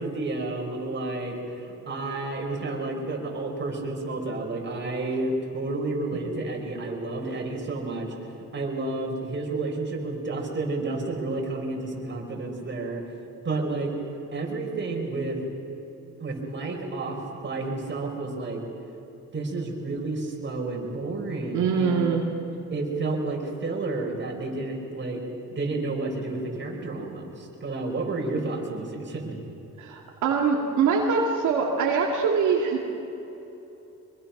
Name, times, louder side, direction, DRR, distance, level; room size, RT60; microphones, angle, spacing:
voice 1, 0.0-8.1 8.5-13.0 13.4-13.9 14.3-15.4 16.2-18.6 19.3-22.1 22.7-25.2 25.5-29.4, right 2 dB, 40° right, 0 dB, 5.2 m, -31 dB
voice 2, 21.5-22.2 29.8-32.9, right 5 dB, 75° right, 0 dB, 2.3 m, -23 dB
24.5 x 22.5 x 6.0 m, 3.0 s
cardioid pair, 90°, 30 cm